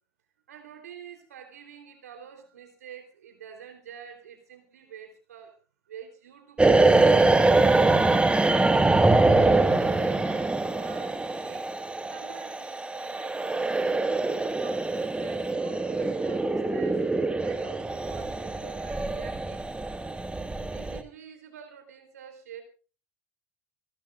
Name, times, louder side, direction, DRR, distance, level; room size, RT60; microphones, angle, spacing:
voice 1, 0.5-5.6 5.9-7.1 7.7-11.7 12.1-14.3 14.6-17.0 17.4-19.7 20.6-22.6, right 8 dB, 90° right, 6 dB, 3.6 m, -47 dB
sound 1, 6.6-21.0, right 2 dB, 15° right, 1.4 m, -24 dB
27.5 x 12.5 x 2.5 m, 0.36 s
hypercardioid pair, 70°, 8 cm